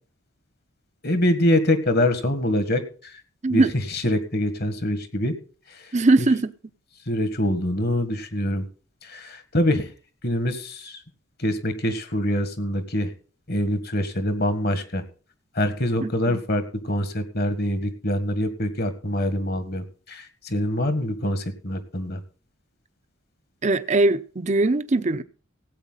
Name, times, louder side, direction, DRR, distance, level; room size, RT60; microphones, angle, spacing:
voice 1, 1.0-3.2 3.5-3.6 3.9-5.3 5.7-5.9 7.1-8.7 9.0-9.9 10.2-11.0 11.4-13.1 13.5-15.0 15.6-22.2, left 1 dB, 50° left, 1.7 m, -25 dB
voice 2, 5.9-6.5 16.0-16.4 23.6-25.2, right 2 dB, 35° right, 0.6 m, -21 dB
17.0 x 8.3 x 4.0 m
head